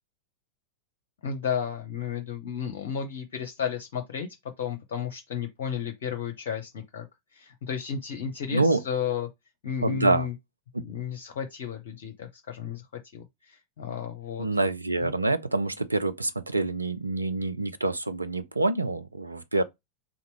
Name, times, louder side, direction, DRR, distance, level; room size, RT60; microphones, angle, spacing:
voice 1, 1.2-4.3 4.6-7.1 7.3-9.3 9.6-10.3 10.8-12.9 13.1-14.5 15.0-15.1, left 8 dB, 55° left, 0.7 m, -33 dB
voice 2, 9.8-10.3 14.4-19.6, right 2 dB, 80° right, 0.4 m, -26 dB
3.7 x 2.9 x 4.5 m
figure-of-eight pair, 90°, 0 cm